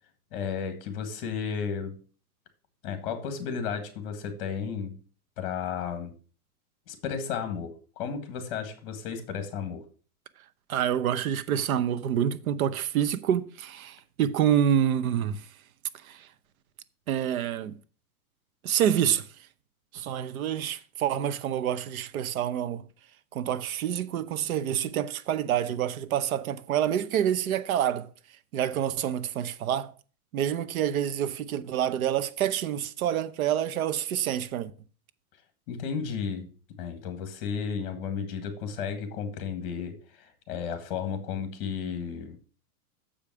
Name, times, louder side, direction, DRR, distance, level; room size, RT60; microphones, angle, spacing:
voice 1, 0.3-2.0 2.8-5.0 5.4-6.1 6.9-9.8 35.7-36.5 36.8-42.4, left 6 dB, 40° left, 1.7 m, -33 dB
voice 2, 10.7-15.5 16.0-16.3 17.1-17.7 18.6-19.3 19.9-22.8 23.3-28.1 28.5-29.9 30.3-34.7, right 10 dB, 70° right, 0.9 m, -27 dB
7.3 x 5.1 x 6.1 m
supercardioid pair, 170°, 45 cm